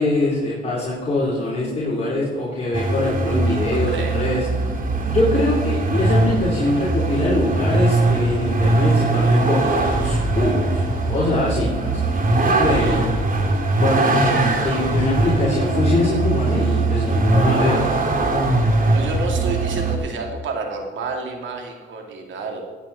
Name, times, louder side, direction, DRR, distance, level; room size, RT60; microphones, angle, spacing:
voice 1, 0.0-4.5 5.1-12.0 12.4-13.0 13.8-17.9, left 2 dB, 30° left, -7 dB, 3.6 m, -23 dB
Vehicle, 2.7-20.0, right 2 dB, 45° right, 2.8 m, -20 dB
voice 2, 3.7-4.2 12.7-13.0 14.5-15.1 18.9-22.6, right 4 dB, 75° right, 2 dB, 2.6 m, -31 dB
16.5 x 9.0 x 4.2 m, 1.5 s
cardioid pair, 90°, 20 cm